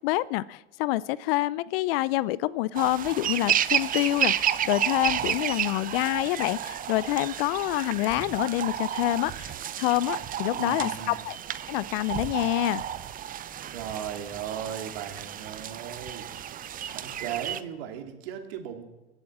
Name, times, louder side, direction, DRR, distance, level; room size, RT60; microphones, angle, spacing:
voice 1, 0.0-11.4 11.7-12.8, left 17 dB, 60° left, 20 dB, 0.5 m, -27 dB
sound 1, 2.8-17.6, right 10 dB, 25° right, 0.7 m, -31 dB
voice 2, 10.5-11.2 13.7-18.8, right 9 dB, 65° right, 5 dB, 2.6 m, -37 dB
23.0 x 8.0 x 7.3 m, 1.1 s
hypercardioid pair, 105°, 33 cm